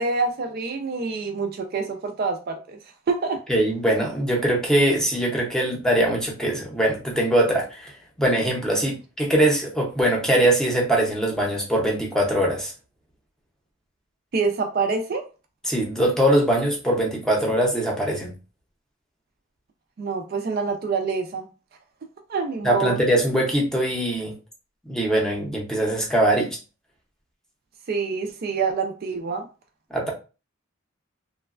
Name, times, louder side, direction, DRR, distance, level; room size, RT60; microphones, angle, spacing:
voice 1, 0.0-2.8 3.1-3.4 14.3-15.2 20.0-21.5 22.3-23.0 27.9-29.5, right 4 dB, 45° right, 0.4 m, -26 dB
voice 2, 3.5-12.7 15.6-18.3 22.6-24.3 24.9-26.6 29.9-30.1, right 1 dB, 5° left, 0.6 m, -22 dB
3.0 x 2.2 x 2.4 m
head